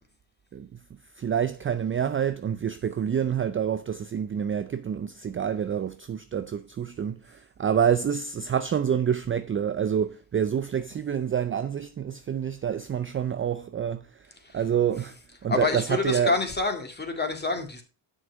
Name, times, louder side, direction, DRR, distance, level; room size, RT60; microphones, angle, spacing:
voice 1, 1.2-15.2 15.4-16.3, right 8 dB, 25° right, 0.5 m, -27 dB
voice 2, 15.5-17.8, left 3 dB, 20° left, 2.1 m, -27 dB
7.7 x 6.2 x 4.6 m
supercardioid pair, 75°, 50 cm